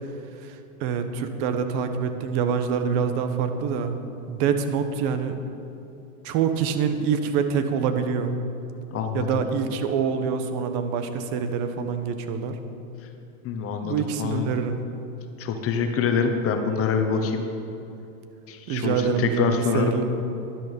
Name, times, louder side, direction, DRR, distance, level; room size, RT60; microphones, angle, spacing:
voice 1, 0.4-3.9 4.3-5.4 6.2-8.3 9.1-12.6 13.8-14.8 18.7-20.0, right 6 dB, 50° right, 8 dB, 1.2 m, -26 dB
voice 2, 8.9-9.3 13.4-14.4 15.4-17.4 18.5-20.0, left 5 dB, 35° left, 5 dB, 1.1 m, -25 dB
13.0 x 11.0 x 5.3 m, 2.8 s
supercardioid pair, 130°, 41 cm